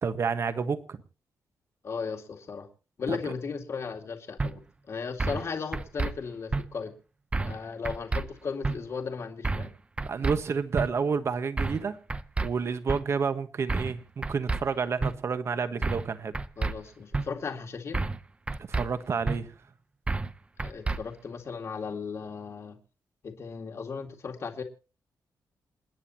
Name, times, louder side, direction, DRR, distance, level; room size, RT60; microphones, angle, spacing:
voice 1, 0.0-1.0 3.1-3.3 10.0-12.0 12.4-16.3 18.7-19.5, right 5 dB, 45° right, 1.4 m, -30 dB
voice 2, 1.8-2.7 3.0-4.6 4.9-6.9 7.4-9.7 16.6-18.1 20.6-22.8 23.2-24.6, left 5 dB, 45° left, 2.2 m, -36 dB
sound 1, 4.4-4.5 5.2-5.4 5.7-6.1 6.5-6.6 7.3-7.6 7.8-8.2 8.6-8.8 9.4-9.7 10.0-10.4 10.8-10.9 11.6-11.8 12.1-12.5 12.9-13.0 13.7-14.0 14.2-14.6 15.0-15.1 15.8-16.1 16.3-16.7 17.1-17.3 17.9-18.2 18.5-18.9 19.3-19.4 20.1-20.3 20.6-21.0, right 3 dB, 20° right, 0.7 m, -29 dB
28.5 x 9.9 x 2.9 m
wide cardioid pair, 145°, 6 cm